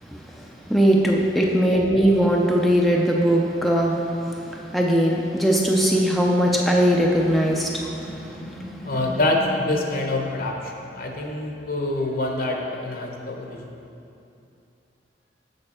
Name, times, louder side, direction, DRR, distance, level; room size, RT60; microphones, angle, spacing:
voice 1, 0.0-9.0, equal, ahead, -2 dB, 0.4 m, -21 dB
sound 1, 8.0-12.4, left 3 dB, 85° left, 1.9 m, -40 dB
voice 2, 8.8-13.6, left 2 dB, 55° left, 1 dB, 0.9 m, -26 dB
6.7 x 6.6 x 4.3 m, 2.7 s
head